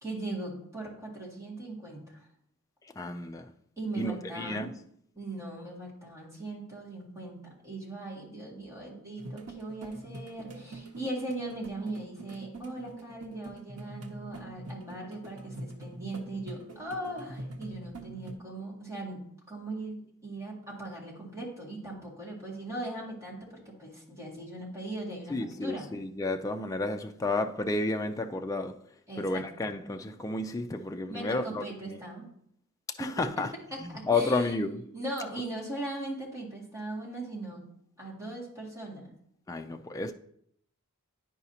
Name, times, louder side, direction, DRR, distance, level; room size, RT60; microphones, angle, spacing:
voice 1, 0.0-2.2 3.8-4.7 5.2-25.9 29.1-29.4 31.1-32.3 33.0-33.4 33.7-37.6 38.0-39.1, right 2 dB, 15° right, 2.1 m, -39 dB
voice 2, 2.8-3.5 4.0-4.7 25.3-28.8 29.2-32.0 33.0-33.5 33.8-34.9 39.5-40.1, left 2 dB, 15° left, 0.3 m, -32 dB
sound 1, 9.2-18.3, right 1 dB, 90° right, 0.9 m, -44 dB
10.5 x 4.8 x 2.8 m
head